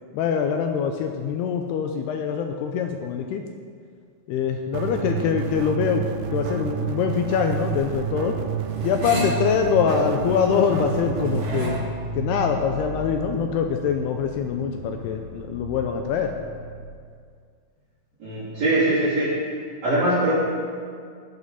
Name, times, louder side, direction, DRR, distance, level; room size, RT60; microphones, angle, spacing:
voice 1, 0.1-3.5 4.3-6.0 6.3-8.4 8.8-11.9 12.2-16.3, left 7 dB, 85° left, 5 dB, 2.3 m, -24 dB
sound 1, 4.7-11.6, right 8 dB, 85° right, 2.4 m, -29 dB
sound 2, 6.4-11.8, equal, 25° right, 1.4 m, -36 dB
sound 3, 7.8-16.9, right 1 dB, 60° left, 2.6 m, -37 dB
voice 2, 18.2-19.3 19.8-20.4, right 1 dB, 40° right, -12 dB, 4.2 m, -21 dB
16.5 x 8.3 x 4.2 m, 2.1 s
omnidirectional pair, 5.2 m